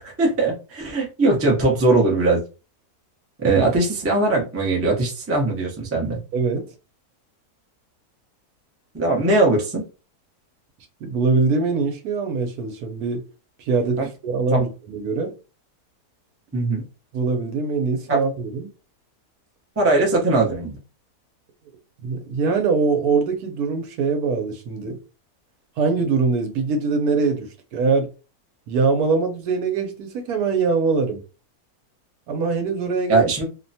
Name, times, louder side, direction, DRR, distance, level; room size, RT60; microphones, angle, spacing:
voice 1, 0.0-2.4 3.4-6.2 8.9-9.8 14.0-14.1 16.5-16.8 18.1-18.2 19.8-20.8 33.1-33.4, right 2 dB, 20° right, 0.4 m, -20 dB
voice 2, 6.3-6.7 11.0-13.3 13.6-15.3 17.1-18.7 22.0-25.0 25.8-28.1 28.7-31.2 32.3-33.3, right 4 dB, 80° right, 1.1 m, -23 dB
2.8 x 2.1 x 2.6 m
omnidirectional pair, 1.6 m